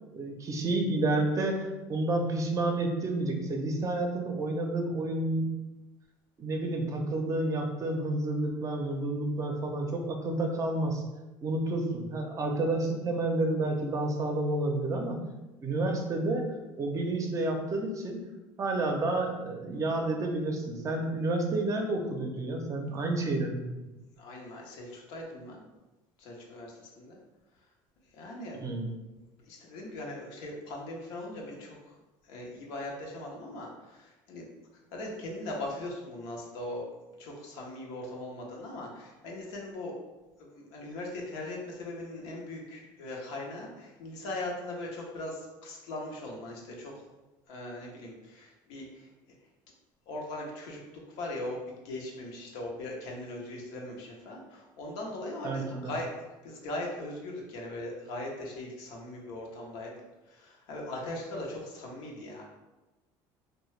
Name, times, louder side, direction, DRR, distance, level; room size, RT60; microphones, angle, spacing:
voice 1, 0.1-1.6 1.9-5.5 6.4-11.0 11.4-15.2 15.6-16.5 16.8-18.2 18.6-23.7 28.5-28.9 55.4-55.8, right 2 dB, 35° right, 3 dB, 0.5 m, -30 dB
voice 2, 24.2-25.6 26.2-27.2 28.1-28.7 29.5-31.9 32.2-34.5 34.9-36.9 37.2-40.0 40.4-47.0 47.5-49.1 50.1-50.8 51.1-56.1 56.4-62.4, left 1 dB, 85° left, -1 dB, 0.7 m, -40 dB
2.7 x 2.2 x 3.1 m, 1.1 s
supercardioid pair, 105°, 10 cm